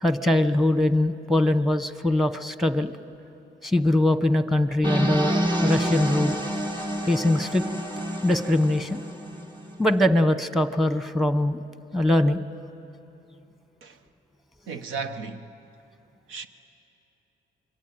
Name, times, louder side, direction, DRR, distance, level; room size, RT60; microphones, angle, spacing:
voice 1, 0.0-2.9 3.6-6.4 7.1-7.6 8.2-9.0 9.8-11.6 11.9-12.4, left 1 dB, ahead, 1.2 m, -22 dB
sound 1, 4.8-9.8, equal, 25° right, 2.6 m, -28 dB
voice 2, 14.7-15.5 16.3-16.5, right 5 dB, 90° right, 1.3 m, -34 dB
26.0 x 23.5 x 9.1 m
cardioid pair, 90°, 20 cm